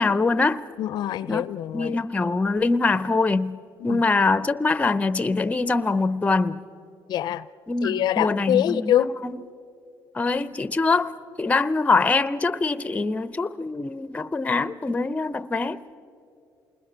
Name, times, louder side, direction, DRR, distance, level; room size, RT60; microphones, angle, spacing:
voice 1, 0.0-0.6 1.3-1.5 1.7-6.7 7.7-9.4 10.1-15.9, left 3 dB, 15° left, 0.6 m, -24 dB
voice 2, 0.8-2.0 3.8-4.0 7.1-7.4 7.8-9.1, left 11 dB, 65° left, 0.5 m, -24 dB
28.5 x 20.5 x 6.9 m
cardioid pair, 120°, 8 cm